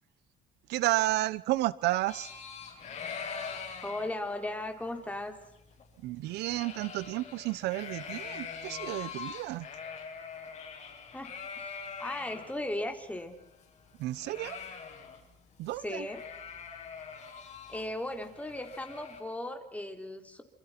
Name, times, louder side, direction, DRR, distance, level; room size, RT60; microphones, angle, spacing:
voice 1, 0.7-2.3 6.0-9.7 14.0-14.6 15.6-16.1, right 17 dB, 85° right, 19 dB, 0.9 m, -31 dB
sound 1, 2.1-12.5 12.9-13.0 13.2-15.3 15.6-15.8 16.0-19.2, left 6 dB, 45° left, 7.3 m, -43 dB
voice 2, 3.8-5.3 11.1-13.3 15.8-16.2 17.7-20.4, left 1 dB, 10° left, 5 dB, 4.1 m, -37 dB
28.0 x 28.0 x 6.0 m, 0.83 s
cardioid pair, 110°, 17 cm